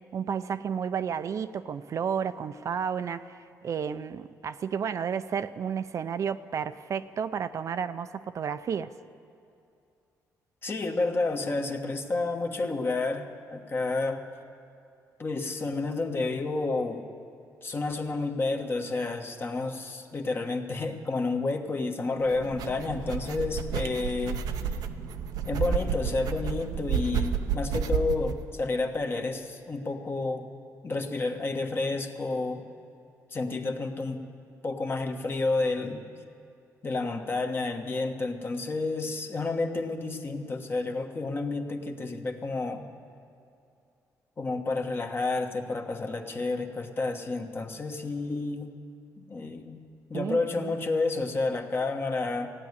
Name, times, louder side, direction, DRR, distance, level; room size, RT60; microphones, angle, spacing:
voice 1, 0.1-8.9 50.1-50.7, right 7 dB, 55° right, 11 dB, 0.5 m, -32 dB
voice 2, 10.6-14.2 15.2-17.1 17.6-24.4 25.5-30.5 30.8-32.6 33.3-34.3 34.6-36.0 36.8-42.8 44.4-48.7 49.2-49.8 50.1-52.5, left 3 dB, 35° left, 4 dB, 1.3 m, -30 dB
sound 1, 22.3-28.4, right 7 dB, 90° right, 0.7 m, -31 dB
15.5 x 9.7 x 9.5 m, 2.6 s
cardioid pair, 100°, 6 cm